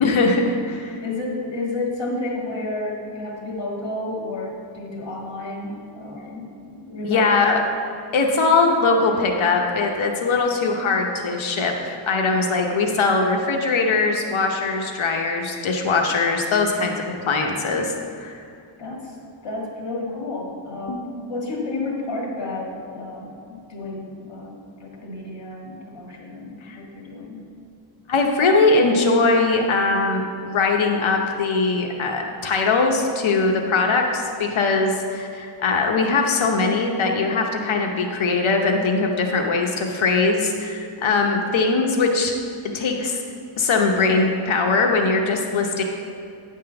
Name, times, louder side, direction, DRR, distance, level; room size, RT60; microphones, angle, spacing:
voice 1, 0.0-1.0 7.0-7.6 8.1-16.9 17.3-18.4 20.9-21.0 26.6-26.8 28.1-42.3 42.7-43.2 43.6-45.8, left 3 dB, 80° left, 2 dB, 0.9 m, -21 dB
voice 2, 1.0-7.6 18.8-19.2 19.4-27.4, left 2 dB, 65° left, -2 dB, 1.7 m, -31 dB
9.6 x 3.7 x 6.7 m, 2.5 s
wide cardioid pair, 170°, 47 cm